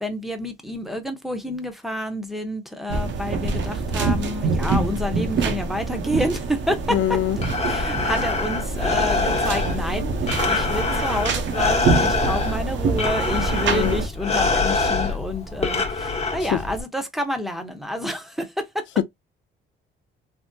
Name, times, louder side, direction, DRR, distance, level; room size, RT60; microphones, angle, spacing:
voice 1, 0.0-7.2 7.6-18.8, left 1 dB, ahead, 0.8 m, -29 dB
sound 1, 2.9-14.1, right 4 dB, 65° right, 0.7 m, -26 dB
voice 2, 6.9-7.4 13.7-14.0 19.0-19.1, left 12 dB, 70° left, 0.4 m, -22 dB
Breathing, 7.2-16.8, left 3 dB, 35° left, 1.1 m, -25 dB
3.5 x 2.0 x 2.6 m
cardioid pair, 90°, 20 cm